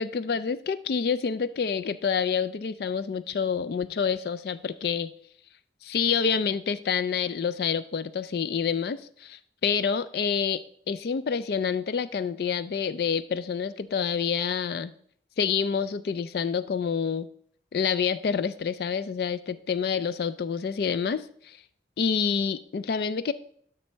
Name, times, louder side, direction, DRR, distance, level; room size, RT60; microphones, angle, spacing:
voice 1, 0.0-5.1 5.8-14.9 15.4-17.3 17.7-21.6 22.0-23.3, left 6 dB, 55° left, 14 dB, 0.3 m, -28 dB
12.5 x 5.4 x 4.4 m, 0.62 s
head